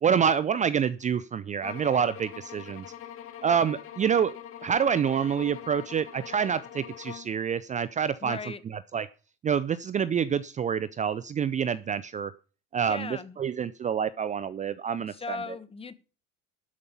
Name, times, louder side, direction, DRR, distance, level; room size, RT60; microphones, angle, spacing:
voice 1, 0.0-2.8 3.4-4.3 4.6-8.4 8.9-9.1 9.4-12.3 12.7-15.4, right 7 dB, 25° right, 15 dB, 0.5 m, -27 dB
sound 1, 1.6-7.4, left 10 dB, 45° left, 2.4 m, -43 dB
voice 2, 8.2-8.6 12.9-13.4 15.1-15.9, left 4 dB, 20° left, 14 dB, 1.3 m, -37 dB
12.5 x 5.4 x 8.5 m, 0.36 s
supercardioid pair, 110°, 30 cm